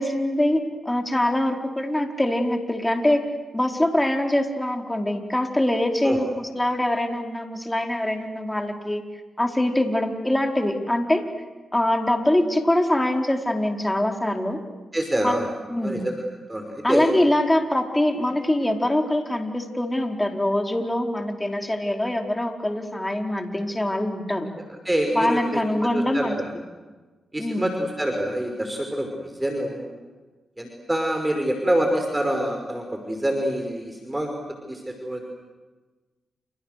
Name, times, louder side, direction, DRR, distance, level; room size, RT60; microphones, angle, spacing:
voice 1, 0.0-3.2 3.5-9.0 9.4-11.2 11.7-14.6 15.2-15.4 15.7-16.0 16.8-24.5 25.1-26.4 27.4-27.7, left 1 dB, 15° left, 3 dB, 4.6 m, -23 dB
voice 2, 14.9-15.5 15.8-16.1 16.5-17.1 24.8-26.5 27.3-29.9 30.6-34.3 34.7-35.2, right 1 dB, 15° right, 4 dB, 5.6 m, -26 dB
29.5 x 29.0 x 6.8 m, 1.3 s
supercardioid pair, 50°, 0 cm